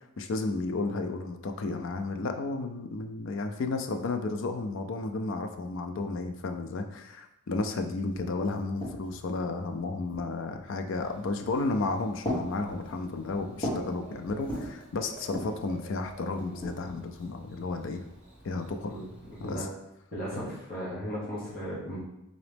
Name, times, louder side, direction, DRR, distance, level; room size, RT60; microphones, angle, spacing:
voice 1, 0.2-18.0 18.4-19.0 19.4-19.7 20.3-20.5, left 3 dB, 60° left, 6 dB, 0.4 m, -33 dB
sound 1, 7.8-7.9 8.1-9.3 10.1-10.6 11.4-11.8 12.2-13.9 14.3-14.8 15.2-15.7 16.4-17.4, equal, 25° left, 1.2 m, -37 dB
Bird / Cricket, 10.9-19.6, right 3 dB, 10° right, 1.1 m, -50 dB
voice 2, 18.8-19.7 20.1-22.0, equal, 40° left, -7 dB, 1.0 m, -36 dB
3.9 x 3.0 x 3.3 m, 0.88 s
head